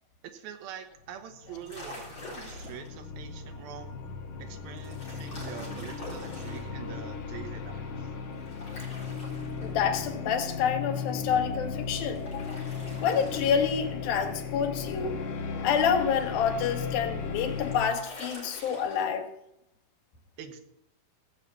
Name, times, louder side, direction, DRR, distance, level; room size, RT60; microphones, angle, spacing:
voice 1, 0.2-4.0 4.4-8.1 20.4-20.6, right 8 dB, 85° right, 7 dB, 3.1 m, -44 dB
sound 1, 1.4-17.8, left 5 dB, 65° left, 2.7 m, -36 dB
sound 2, 1.4-2.9 4.8-6.7 8.4-10.1 11.9-14.1 17.0-19.0, left 1 dB, 35° left, 4.4 m, -46 dB
voice 2, 9.6-12.6 13.0-15.2 15.6-19.3, left 7 dB, 80° left, 6 dB, 3.1 m, -28 dB
16.5 x 5.8 x 7.8 m, 0.83 s
omnidirectional pair, 4.2 m